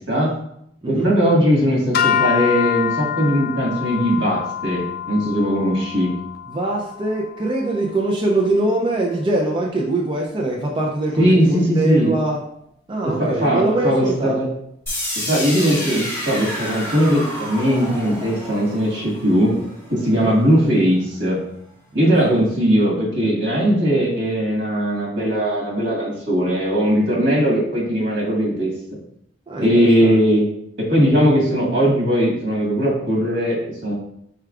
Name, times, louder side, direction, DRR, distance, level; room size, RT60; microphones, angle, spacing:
voice 1, 0.8-6.1 11.2-12.1 13.0-14.5 15.2-19.6 19.9-21.4 21.9-28.7 29.6-30.5 30.8-33.9, equal, 75° right, -3 dB, 1.7 m, -19 dB
sound 1, 1.9-8.3, left 9 dB, 55° left, 0.3 m, -26 dB
voice 2, 6.5-12.4 12.9-14.4 20.1-20.4 21.9-22.4 29.5-30.2, right 2 dB, 25° right, -1 dB, 0.5 m, -23 dB
sound 2, 14.9-20.8, left 1 dB, 15° left, 1.6 m, -30 dB
4.6 x 4.5 x 2.4 m, 0.73 s
head